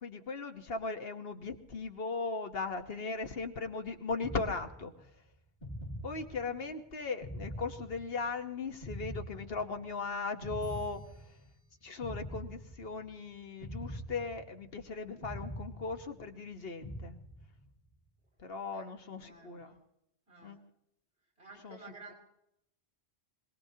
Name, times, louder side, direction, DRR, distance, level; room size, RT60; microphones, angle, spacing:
voice 1, 0.0-5.1 6.0-11.3 11.8-17.2 18.4-19.7 20.4-20.6 21.6-21.8, left 4 dB, 60° left, 6 dB, 1.4 m, -38 dB
sound 1, 4.2-5.1 5.6-6.7 7.2-8.4 8.8-10.0 10.4-11.6 12.0-13.1 13.6-14.8 15.2-16.4 16.8-17.7, equal, 40° left, 4.9 m, -43 dB
voice 2, 18.7-19.8 20.3-20.6 21.4-22.1, right 3 dB, 80° right, -1 dB, 5.7 m, -53 dB
25.5 x 19.0 x 2.8 m, 0.79 s
omnidirectional pair, 1.1 m